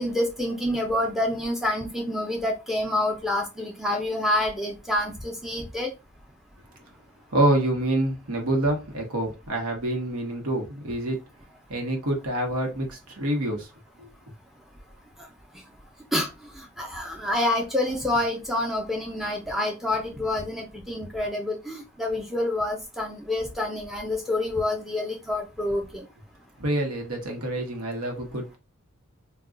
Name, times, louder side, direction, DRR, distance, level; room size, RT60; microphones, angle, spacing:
voice 1, 0.0-5.9 16.1-16.3 16.8-26.0, left 1 dB, ahead, 0.5 m, -27 dB
voice 2, 7.3-11.2 11.7-13.7 14.0-14.1 26.6-28.6, right 1 dB, 85° right, 0.9 m, -26 dB
2.4 x 2.2 x 3.7 m
head